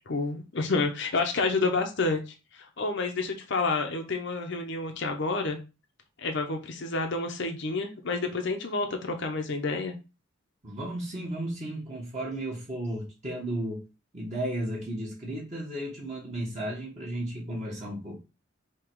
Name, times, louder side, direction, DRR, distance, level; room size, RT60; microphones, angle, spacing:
voice 1, 0.1-5.6 6.2-9.9, left 3 dB, 60° left, 4 dB, 0.7 m, -29 dB
voice 2, 10.6-13.8 14.1-18.2, right 1 dB, 35° right, -3 dB, 1.3 m, -34 dB
3.7 x 2.9 x 4.5 m, 0.29 s
head